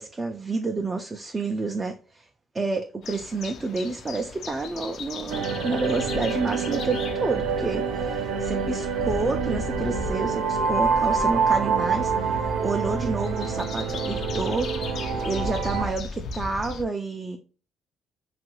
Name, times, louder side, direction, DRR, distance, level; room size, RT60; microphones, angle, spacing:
voice 1, 0.0-2.3 2.5-17.4, right 3 dB, 20° right, 0.4 m, -29 dB
sound 1, 3.0-16.8, left 3 dB, 60° left, 0.4 m, -36 dB
sound 2, 5.3-15.9, right 5 dB, 90° right, 0.5 m, -27 dB
3.0 x 2.4 x 3.0 m
cardioid pair, 120°, 0 cm